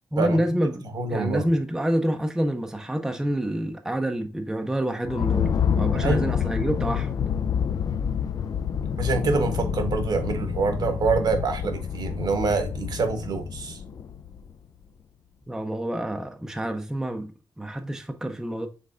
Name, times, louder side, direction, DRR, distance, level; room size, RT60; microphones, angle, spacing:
voice 1, 0.1-0.8 1.1-7.1 15.5-18.7, right 1 dB, 5° right, 0.5 m, -27 dB
voice 2, 0.9-1.5 6.0-6.2 9.0-13.8, right 4 dB, 60° right, 1.0 m, -25 dB
sound 1, 5.0-14.7, left 7 dB, 50° left, 0.3 m, -28 dB
5.4 x 3.4 x 2.5 m
cardioid pair, 105°, 8 cm